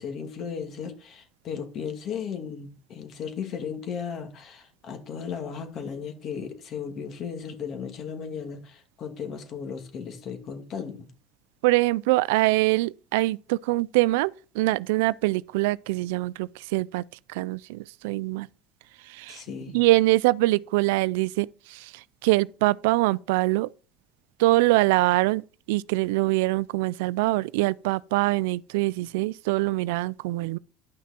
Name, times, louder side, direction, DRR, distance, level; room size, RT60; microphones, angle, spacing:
voice 1, 0.0-11.1 19.3-19.8, left 7 dB, 50° left, 2.4 m, -35 dB
voice 2, 11.6-17.0 17.3-18.5 19.1-19.4 19.7-23.7 24.4-30.6, right 20 dB, 90° right, 0.3 m, -24 dB
11.0 x 6.0 x 4.4 m
supercardioid pair, 110°, 0 cm